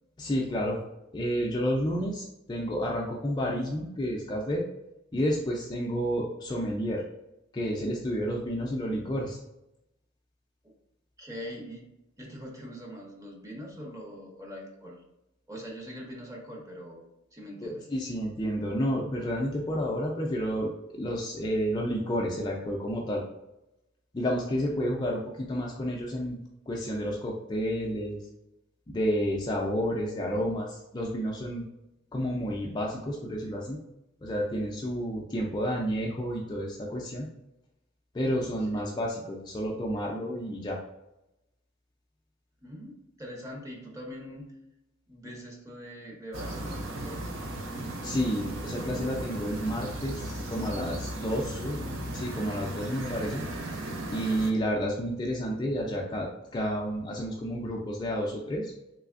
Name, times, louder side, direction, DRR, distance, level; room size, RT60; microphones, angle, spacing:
voice 1, 0.2-0.8 1.1-4.6 5.1-7.0 7.5-9.4 17.6-23.2 24.1-26.4 26.7-28.2 28.9-31.6 32.1-33.8 34.2-37.3 38.1-40.8 48.0-51.8 52.1-53.4 54.1-58.7, equal, 20° left, -2 dB, 0.3 m, -30 dB
voice 2, 11.2-15.0 15.5-17.0 17.3-17.9 38.7-38.8 42.6-44.5 45.1-47.3, equal, 15° right, 0 dB, 0.7 m, -43 dB
sound 1, 46.3-54.5, right 1 dB, 75° right, 0.5 m, -36 dB
3.3 x 3.0 x 2.4 m, 0.89 s
head